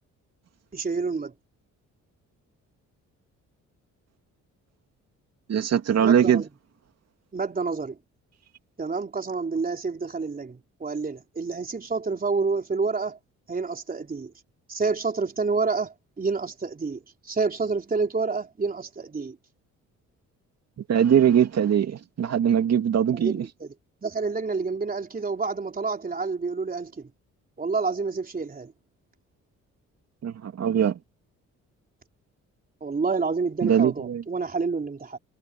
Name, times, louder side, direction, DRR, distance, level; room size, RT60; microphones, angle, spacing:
voice 1, 0.7-1.3 6.0-6.5 7.3-8.0 8.8-13.2 13.5-14.3 14.7-19.4 23.1-23.3 23.6-23.7 24.0-27.1 27.6-28.7 32.8-35.2, right 4 dB, 30° right, 4.1 m, -28 dB
voice 2, 5.5-6.4 20.9-23.5 30.2-31.0 33.6-34.2, right 8 dB, 55° right, 2.6 m, -21 dB
cardioid pair, 90°, 30 cm